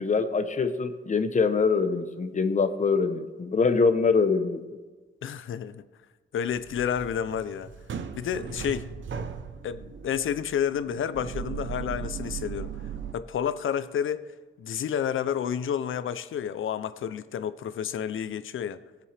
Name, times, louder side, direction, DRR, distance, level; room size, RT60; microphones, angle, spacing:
voice 1, 0.0-4.6, left 4 dB, 40° left, 0.8 m, -24 dB
voice 2, 5.2-5.8 6.3-7.7 8.1-8.9 9.6-12.7 13.1-14.2 14.6-18.8, left 8 dB, 90° left, 0.5 m, -30 dB
sound 1, 6.5-13.1, right 7 dB, 75° right, 0.7 m, -38 dB
19.0 x 7.7 x 3.3 m
wide cardioid pair, 140°, 20 cm